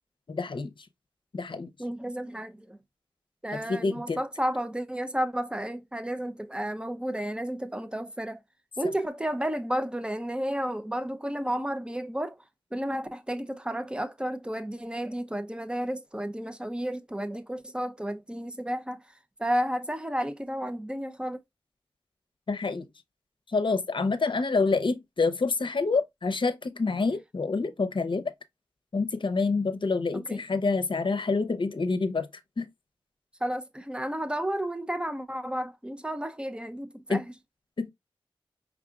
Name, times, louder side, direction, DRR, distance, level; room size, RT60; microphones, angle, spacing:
voice 1, 0.3-0.7 1.3-1.7 3.5-4.2 22.5-22.9 23.5-28.3 28.9-32.3 32.6-32.7 37.1-37.2 37.8-37.9, left 4 dB, 60° left, 0.7 m, -27 dB
voice 2, 1.8-2.8 3.4-8.4 8.8-12.4 12.7-19.0 19.4-21.4 30.1-30.4 33.4-37.2, right 1 dB, 10° right, 0.7 m, -32 dB
4.8 x 3.5 x 2.4 m
cardioid pair, 45°, 9 cm